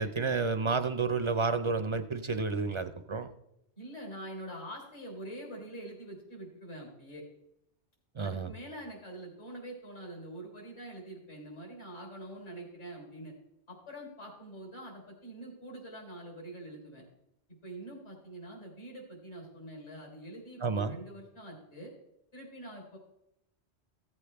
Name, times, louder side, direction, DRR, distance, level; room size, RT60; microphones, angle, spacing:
voice 1, 0.0-3.3 8.2-8.5 20.6-21.0, right 4 dB, 45° right, 9 dB, 0.4 m, -30 dB
voice 2, 3.8-7.2 8.2-13.3 13.7-17.0 17.6-21.9 22.3-23.0, right 1 dB, 80° left, -1 dB, 4.0 m, -45 dB
15.0 x 8.2 x 3.4 m, 0.84 s
omnidirectional pair, 1.1 m